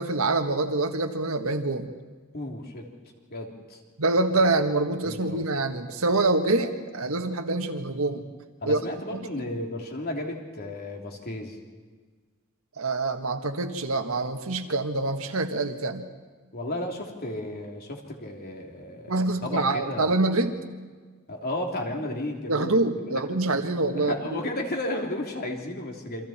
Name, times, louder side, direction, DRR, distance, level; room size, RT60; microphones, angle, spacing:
voice 1, 0.0-1.9 4.0-8.2 8.7-8.8 9.1-9.2 12.8-16.1 19.1-20.5 22.5-24.2, right 2 dB, 75° right, 6 dB, 1.8 m, -25 dB
voice 2, 2.3-2.9 3.3-3.8 5.0-5.4 8.6-11.6 16.5-20.1 21.3-22.7 23.1-23.2 23.9-26.3, left 1 dB, 45° left, 1 dB, 3.3 m, -33 dB
28.5 x 26.0 x 4.5 m, 1.4 s
head